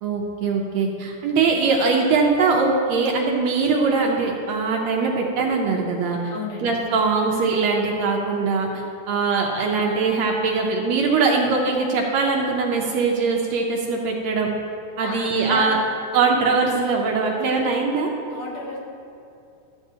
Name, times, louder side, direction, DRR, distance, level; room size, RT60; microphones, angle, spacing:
voice 1, 0.0-6.3 6.6-14.5 15.0-15.8 16.1-18.1, right 4 dB, 75° right, 0 dB, 1.7 m, -21 dB
voice 2, 6.3-6.7 15.0-15.7 18.3-18.8, left 3 dB, 65° left, -3 dB, 2.0 m, -32 dB
12.5 x 8.0 x 2.8 m, 2.7 s
omnidirectional pair, 3.5 m